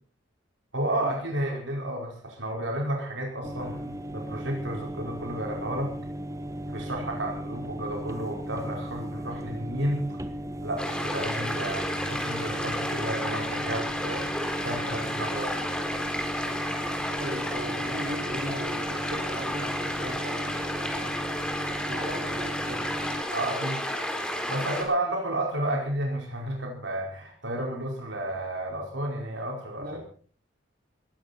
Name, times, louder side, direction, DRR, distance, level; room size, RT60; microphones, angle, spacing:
voice 1, 0.7-5.9 6.7-10.2 10.6-15.6 23.3-23.8 24.5-30.0, right 1 dB, 80° right, 1 dB, 5.0 m, -32 dB
sound 1, 3.4-23.2, equal, 15° right, 1.2 m, -36 dB
sound 2, 10.8-24.8, equal, 5° left, 4.1 m, -32 dB
voice 2, 17.2-22.8 29.8-30.0, right 1 dB, 55° right, 1 dB, 5.5 m, -39 dB
20.5 x 15.5 x 4.3 m, 0.42 s
head